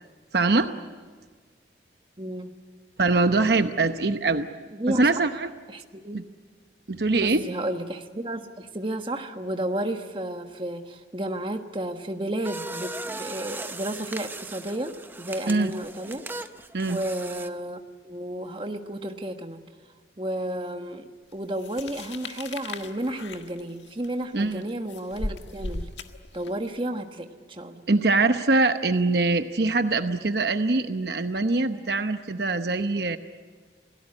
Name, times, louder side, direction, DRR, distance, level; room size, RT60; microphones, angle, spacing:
voice 1, 0.3-0.7 3.0-4.5 4.9-5.5 6.1-6.2 6.9-7.4 15.5-15.7 16.7-17.0 24.3-24.6 27.9-33.2, right 3 dB, 60° right, 8 dB, 0.9 m, -23 dB
voice 2, 2.2-2.6 4.7-5.2 5.7-6.2 7.2-16.2 16.9-17.8 18.0-19.6 20.2-25.9 26.3-27.9, right 1 dB, 25° right, 5 dB, 1.4 m, -32 dB
sound 1, 12.4-17.5, right 2 dB, 10° right, 0.7 m, -38 dB
sound 2, 21.6-26.7, left 2 dB, 80° left, 1.6 m, -37 dB
27.5 x 18.0 x 9.9 m, 1.5 s
head